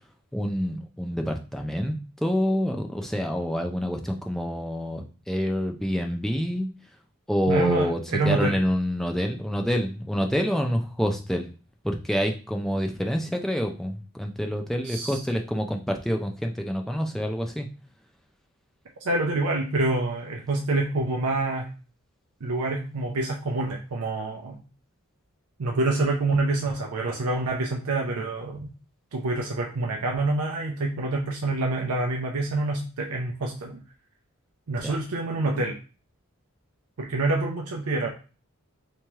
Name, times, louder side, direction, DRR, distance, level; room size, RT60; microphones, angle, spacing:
voice 1, 0.3-6.7 7.3-11.5 11.8-17.7 34.8-35.0, equal, ahead, 3 dB, 0.3 m, -27 dB
voice 2, 7.5-8.6 14.8-15.2 19.0-21.7 22.4-24.6 25.6-28.7 29.1-33.8 34.7-35.8 37.0-38.1, right 2 dB, 90° right, 0 dB, 0.6 m, -27 dB
3.1 x 2.9 x 3.4 m, 0.35 s
head